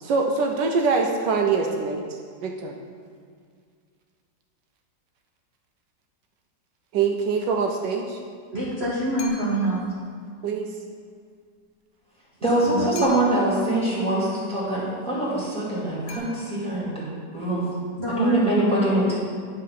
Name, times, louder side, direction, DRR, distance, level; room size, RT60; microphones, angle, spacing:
voice 1, 0.0-2.0 2.4-2.7 6.9-8.2 10.4-10.7, right 4 dB, 75° right, 2 dB, 1.2 m, -24 dB
voice 2, 8.5-9.8 12.6-12.9 18.0-18.9, right 1 dB, 40° right, -8 dB, 1.2 m, -26 dB
sound 1, 9.2-9.8 12.9-13.6 16.1-16.9, left 5 dB, 90° left, 1.6 m, -43 dB
voice 3, 12.4-17.0 17.3-17.7 18.2-19.1, right 1 dB, 5° left, -8 dB, 2.0 m, -23 dB
9.9 x 3.7 x 5.8 m, 2.1 s
omnidirectional pair, 2.0 m